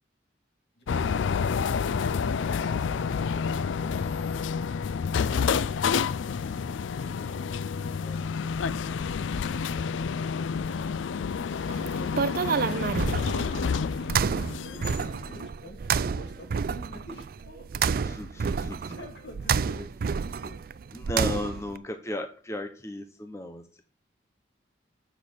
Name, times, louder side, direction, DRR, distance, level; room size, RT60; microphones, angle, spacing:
sound 1, 0.9-15.5, left 6 dB, 85° left, 0.4 m, -29 dB
voice 1, 7.0-7.4 18.0-18.9 20.9-23.8, left 1 dB, 15° left, 7 dB, 0.7 m, -35 dB
sound 2, 11.6-21.8, right 6 dB, 50° right, 0.3 m, -30 dB
voice 2, 12.0-18.1 18.5-20.6, left 1 dB, 65° left, 3 dB, 2.7 m, -50 dB
8.1 x 6.4 x 7.1 m, 0.41 s
head